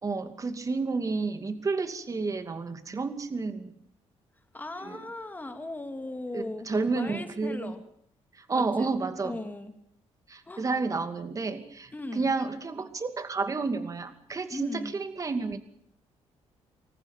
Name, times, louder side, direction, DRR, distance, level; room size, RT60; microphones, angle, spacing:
voice 1, 0.0-3.7 4.8-5.0 6.3-7.7 8.4-9.4 10.3-15.6, right 4 dB, 30° right, 9 dB, 2.5 m, -31 dB
voice 2, 4.5-7.8 8.5-8.9 9.2-9.7 10.5-10.6 11.9-12.4 14.5-15.0, left 2 dB, 15° left, 7 dB, 2.6 m, -38 dB
25.5 x 14.5 x 9.1 m, 0.68 s
cardioid pair, 120°, 11 cm